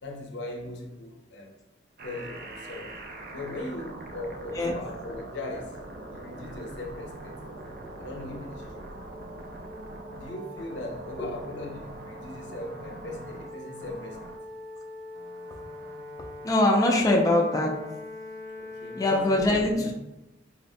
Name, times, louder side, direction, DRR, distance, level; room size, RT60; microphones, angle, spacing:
voice 1, 0.0-1.6 2.0-3.0 3.3-5.8 6.1-7.4 8.0-8.9 10.1-14.4 18.6-19.9, left 2 dB, 80° left, 0.5 m, -38 dB
sound 1, 2.0-19.5, equal, 55° right, 0.4 m, -42 dB
voice 2, 16.4-17.7 19.0-19.8, left 1 dB, 20° left, 0.3 m, -22 dB
4.1 x 2.0 x 2.6 m
head